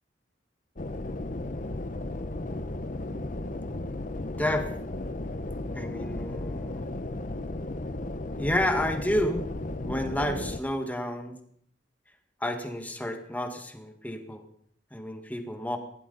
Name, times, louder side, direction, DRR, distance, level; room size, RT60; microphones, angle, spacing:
sound 1, 0.8-10.6, left 2 dB, 45° left, 0.9 m, -34 dB
voice 1, 4.3-4.7 5.7-7.0 8.4-9.5 9.9-11.4 12.4-14.5 14.9-15.8, left 1 dB, 10° left, 6 dB, 1.7 m, -30 dB
20.0 x 15.5 x 4.1 m, 0.64 s
head